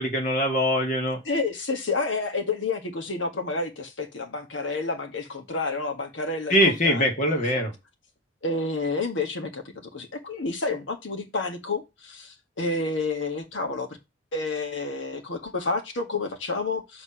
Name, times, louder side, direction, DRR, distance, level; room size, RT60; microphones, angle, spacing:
voice 1, 0.0-1.2 6.5-7.7, equal, 40° left, 2.0 m, -22 dB
voice 2, 1.2-7.6 8.4-14.0 14.3-17.0, left 3 dB, 80° left, 1.6 m, -30 dB
6.7 x 3.5 x 5.7 m
head